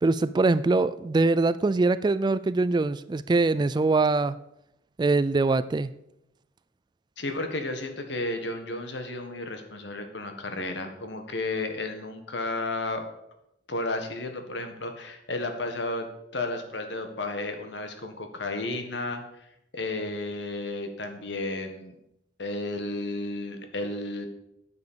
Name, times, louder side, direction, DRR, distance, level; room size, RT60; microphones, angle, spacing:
voice 1, 0.0-4.4 5.0-5.9, right 3 dB, 25° right, 15 dB, 0.3 m, -23 dB
voice 2, 7.2-13.0 13.7-16.1 16.3-19.2 19.7-21.9 22.4-24.3, left 2 dB, 70° left, 6 dB, 1.6 m, -32 dB
9.5 x 7.3 x 6.8 m, 0.82 s
head